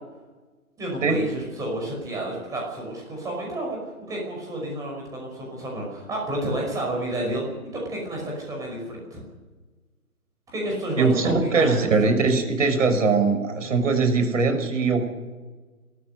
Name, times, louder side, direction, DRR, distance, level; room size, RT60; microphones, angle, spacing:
voice 1, 0.8-3.8 4.1-7.4 7.7-9.2 10.5-11.9, right 1 dB, 10° right, -1 dB, 5.6 m, -30 dB
voice 2, 11.0-15.1, right 4 dB, 60° right, 6 dB, 5.9 m, -21 dB
29.5 x 14.0 x 6.8 m, 1.3 s
hypercardioid pair, 155°, 43 cm